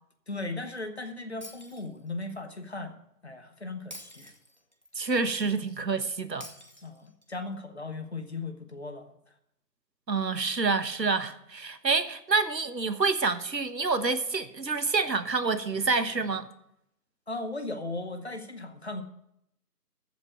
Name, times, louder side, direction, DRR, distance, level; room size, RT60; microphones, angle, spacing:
voice 1, 0.3-3.0 3.2-4.3 6.8-9.2 17.3-19.0, left 2 dB, 40° left, 1.0 m, -37 dB
Shatter, 1.4-2.4 3.9-4.9 6.4-7.4, left 1 dB, 30° right, 0.7 m, -47 dB
voice 2, 5.0-6.5 10.1-16.5, right 4 dB, 85° right, 1.3 m, -27 dB
14.5 x 5.3 x 7.7 m
figure-of-eight pair, 160°, 49 cm